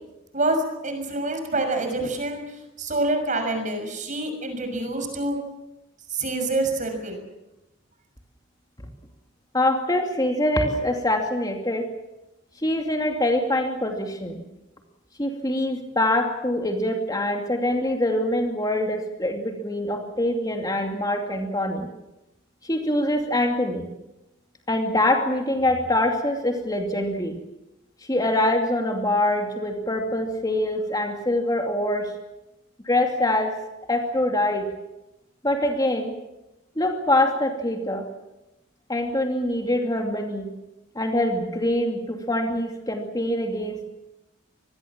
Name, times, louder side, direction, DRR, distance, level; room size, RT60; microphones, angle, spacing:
voice 1, 0.3-2.4 2.8-5.4 6.1-7.2, right 2 dB, 40° right, 5 dB, 6.2 m, -26 dB
voice 2, 9.5-11.9 12.6-14.4 15.2-21.9 22.6-23.9 24.7-27.4 28.1-32.1 32.8-33.5 33.9-34.7 35.4-36.1 36.8-38.0 38.9-40.5 40.9-43.9, left 1 dB, 20° left, 3 dB, 2.6 m, -24 dB
26.5 x 21.0 x 7.4 m, 0.93 s
head